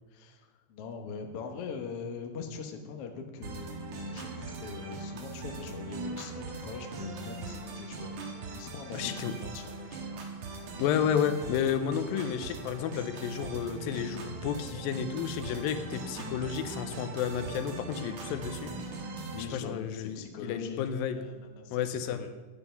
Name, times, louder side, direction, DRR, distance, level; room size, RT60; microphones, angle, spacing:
voice 1, 0.1-0.4 0.7-8.2 8.5-10.2 19.3-20.8 21.1-22.3, left 5 dB, 70° left, 5 dB, 1.4 m, -42 dB
sound 1, 3.4-19.4, right 3 dB, 60° right, 2.2 m, -40 dB
voice 2, 8.9-9.3 10.8-18.7 19.4-21.3 21.7-22.2, left 8 dB, 85° left, 11 dB, 2.4 m, -31 dB
9.7 x 8.0 x 5.7 m, 1.3 s
omnidirectional pair, 4.0 m